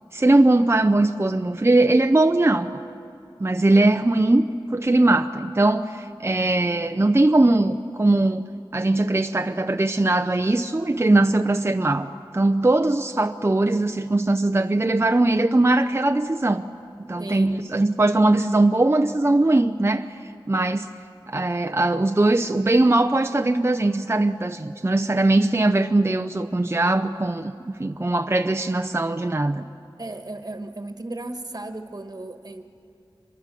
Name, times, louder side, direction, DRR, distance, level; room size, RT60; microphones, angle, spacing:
voice 1, 0.1-2.8 3.4-4.5 4.7-8.4 8.7-16.7 17.1-20.2 20.5-20.9 21.3-29.6, right 2 dB, 30° right, 6 dB, 0.7 m, -20 dB
voice 2, 17.2-17.7 30.0-32.6, right 2 dB, 45° right, 6 dB, 1.5 m, -35 dB
25.5 x 23.0 x 7.7 m, 2.4 s
wide cardioid pair, 65°, 9 cm